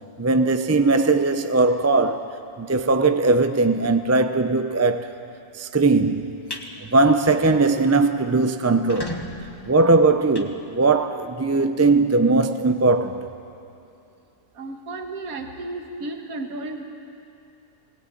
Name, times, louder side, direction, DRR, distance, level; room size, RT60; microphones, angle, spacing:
voice 1, 0.2-2.3 2.6-5.1 5.6-6.3 6.9-9.2 9.7-13.3, right 3 dB, 20° right, 0.4 m, -19 dB
sound 1, 6.2-6.7 7.1-7.4 7.7-7.8 8.0-8.1 8.7-11.2, left 1 dB, 15° left, 1.4 m, -36 dB
voice 2, 14.6-16.8, right 2 dB, 80° right, 1.8 m, -33 dB
21.0 x 18.5 x 9.3 m
omnidirectional pair, 1.5 m